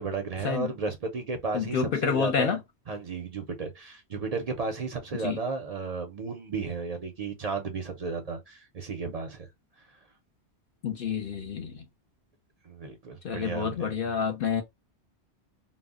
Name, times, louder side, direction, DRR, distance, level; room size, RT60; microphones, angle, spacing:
voice 1, 0.0-1.8 2.0-2.6 2.9-9.4 12.6-13.9, right 4 dB, 50° right, 0.5 m, -33 dB
voice 2, 1.5-2.6 5.1-5.4 10.8-11.8 13.2-14.6, left 7 dB, 60° left, 0.7 m, -29 dB
2.0 x 2.0 x 3.4 m
omnidirectional pair, 1.1 m